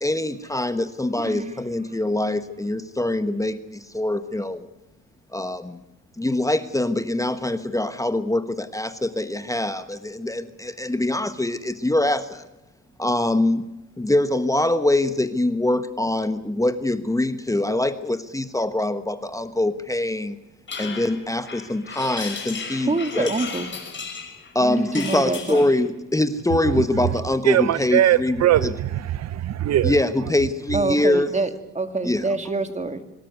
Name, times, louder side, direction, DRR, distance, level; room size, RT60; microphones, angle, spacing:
voice 1, 0.0-4.7 5.3-5.8 6.2-12.5 13.0-13.6 14.0-20.4 20.8-23.3 24.5-28.7 29.8-31.4 32.0-32.3, left 1 dB, 10° left, 11 dB, 1.2 m, -24 dB
voice 2, 1.2-1.6 22.9-23.7 24.6-25.6 30.7-31.5 31.7-33.0, right 3 dB, 25° right, 8 dB, 2.4 m, -26 dB
sound 1, 20.7-25.8, left 5 dB, 40° left, 5.7 m, -35 dB
voice 3, 27.5-30.0, right 12 dB, 60° right, 17 dB, 0.7 m, -20 dB
25.0 x 13.0 x 9.5 m, 0.99 s
cardioid pair, 90°, 30 cm